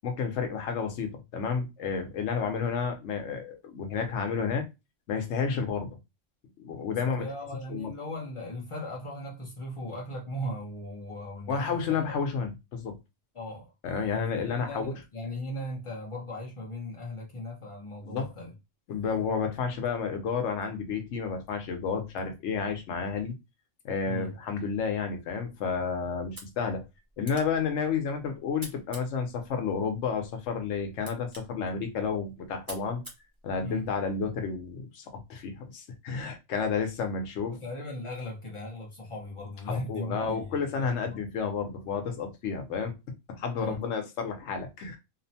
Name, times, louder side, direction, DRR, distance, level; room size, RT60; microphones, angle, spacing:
voice 1, 0.0-4.7 5.1-5.9 6.6-7.3 7.7-7.9 11.5-13.0 13.8-14.9 18.0-18.3 18.9-23.3 23.8-26.8 27.2-33.0 33.4-37.6 39.7-42.9 43.3-45.0, left 5 dB, 65° left, 0.9 m, -31 dB
voice 2, 7.1-11.8 12.1-12.2 13.3-13.7 14.1-18.5 24.1-24.4 33.6-33.9 37.5-41.3 43.6-43.8, left 1 dB, 45° left, 0.4 m, -38 dB
sound 1, 26.2-34.2, right 1 dB, 25° right, 0.5 m, -50 dB
2.8 x 2.1 x 2.6 m
omnidirectional pair, 1.5 m